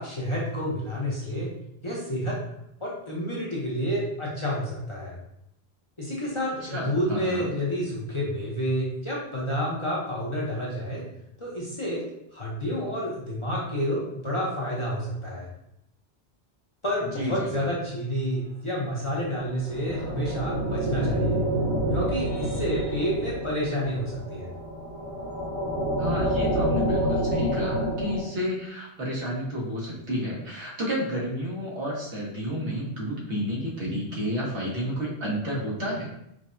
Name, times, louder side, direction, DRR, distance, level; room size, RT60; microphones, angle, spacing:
voice 1, 0.0-1.5 1.8-2.4 2.8-5.2 6.0-11.0 11.4-12.0 12.3-15.5 16.8-21.4 21.9-24.5, equal, 30° left, -5 dB, 0.7 m, -29 dB
voice 2, 6.6-7.5 17.1-17.7 26.0-36.1, equal, 90° right, -4 dB, 1.4 m, -31 dB
sound 1, 19.3-28.2, right 1 dB, 65° right, 1.3 m, -28 dB
sound 2, 19.7-23.1, left 1 dB, 60° left, 0.9 m, -44 dB
4.7 x 2.2 x 2.5 m, 0.79 s
omnidirectional pair, 1.1 m